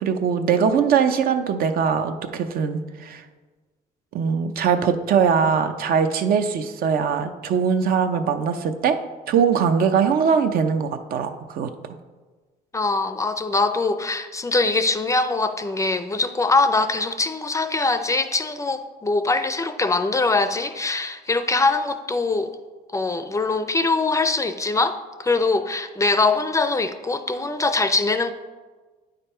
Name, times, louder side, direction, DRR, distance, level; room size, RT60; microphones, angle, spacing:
voice 1, 0.0-3.2 4.1-9.0 9.3-11.7, right 6 dB, 60° right, 8 dB, 0.6 m, -21 dB
voice 2, 12.7-22.5 22.9-28.3, left 3 dB, 20° left, 10 dB, 0.4 m, -22 dB
8.9 x 5.2 x 4.3 m, 1.3 s
cardioid pair, 110°, 17 cm